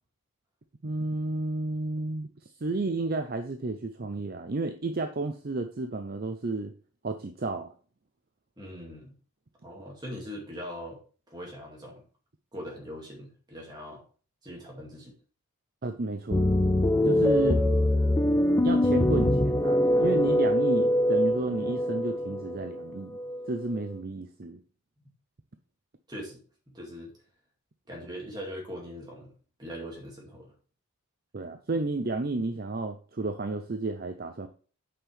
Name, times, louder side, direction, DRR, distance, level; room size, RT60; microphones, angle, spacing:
voice 1, 0.8-2.3 2.6-6.7 7.0-7.7 15.8-16.5 17.0-17.7 18.6-23.2 23.5-24.6 31.3-34.5, right 2 dB, 40° right, 7 dB, 0.6 m, -31 dB
voice 2, 8.6-9.1 9.6-11.0 11.3-12.0 12.5-14.0 14.4-15.1 17.3-17.7 26.1-26.4 26.7-27.1 27.9-29.3 29.6-30.5, equal, 20° right, -2 dB, 2.3 m, -41 dB
sound 1, 16.3-23.8, left 1 dB, 10° left, 0.3 m, -24 dB
8.6 x 5.6 x 3.4 m, 0.40 s
head